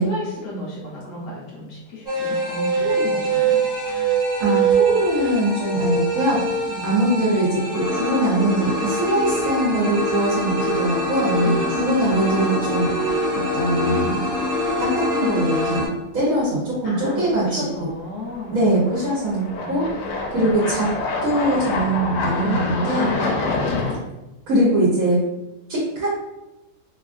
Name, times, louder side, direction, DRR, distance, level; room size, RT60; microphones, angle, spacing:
voice 1, 0.0-3.6 6.7-7.0 11.4-12.1 16.8-18.7 19.5-20.7 22.4-23.9, left 2 dB, 60° left, -5 dB, 1.0 m, -33 dB
sound 1, 2.1-15.9, right 2 dB, 5° right, 0.5 m, -23 dB
voice 2, 4.4-12.9 13.5-14.2 14.8-15.9 16.1-17.9 18.5-19.9 20.3-20.9 21.2-23.1 24.5-25.2 25.7-26.1, right 1 dB, 65° right, -7 dB, 1.2 m, -22 dB
sound 2, 6.0-6.6 7.0-7.1 10.0-10.1 11.4-11.7 12.0-12.1 17.4-17.5 18.3-24.0, left 3 dB, 90° left, 1.2 m, -27 dB
3.0 x 2.3 x 2.5 m, 0.99 s
omnidirectional pair, 1.7 m